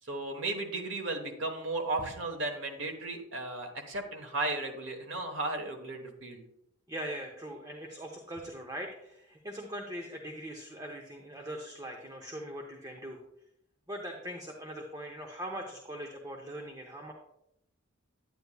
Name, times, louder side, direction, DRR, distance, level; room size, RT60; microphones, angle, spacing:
voice 1, 0.0-6.4, right 2 dB, 70° right, 4 dB, 1.2 m, -35 dB
voice 2, 6.9-13.2 13.9-17.1, equal, 20° right, 1 dB, 0.7 m, -41 dB
9.4 x 9.3 x 2.3 m, 0.82 s
head